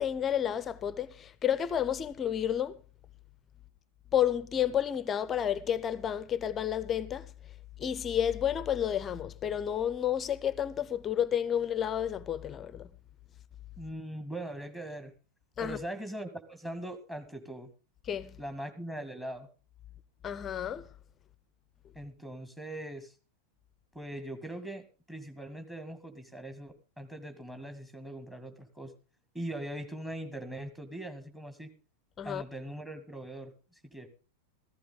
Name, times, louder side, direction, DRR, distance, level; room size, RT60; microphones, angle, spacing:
voice 1, 0.0-2.8 4.1-7.3 7.8-12.9 15.6-15.8 18.1-18.4 20.2-20.9 32.2-32.4, left 9 dB, 25° left, 0.6 m, -31 dB
voice 2, 13.8-15.1 15.6-17.7 18.4-19.5 22.0-23.1 23.9-28.9 29.3-31.7 32.2-34.1, right 1 dB, 5° right, 2.0 m, -41 dB
14.5 x 14.5 x 3.8 m
figure-of-eight pair, 90°, 0 cm